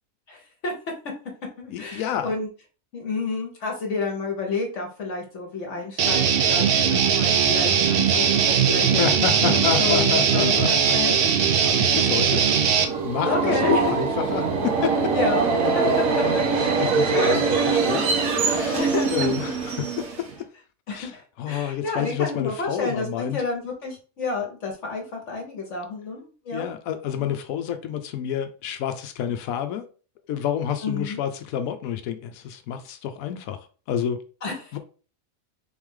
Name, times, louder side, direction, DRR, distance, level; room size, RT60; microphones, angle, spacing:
voice 1, 0.3-0.7 1.6-2.5 2.9-11.2 11.9-12.1 13.2-13.9 15.1-15.5 15.7-16.0 17.1-17.4 18.7-19.3 20.9-26.7 27.1-27.3 30.8-31.2 34.4-34.8, left 3 dB, 65° left, 1.2 m, -30 dB
voice 2, 1.7-2.3 9.0-11.2 11.6-12.5 13.0-15.1 15.8-18.8 19.1-20.3 20.9-21.1 21.4-23.4 26.5-29.8 30.3-34.2 34.7-34.8, left 9 dB, 90° left, 1.0 m, -29 dB
Guitar, 6.0-12.9, right 7 dB, 55° right, 0.7 m, -20 dB
Subway metro underground, 12.6-20.4, right 4 dB, 80° right, 1.4 m, -23 dB
4.0 x 3.1 x 3.6 m
omnidirectional pair, 1.4 m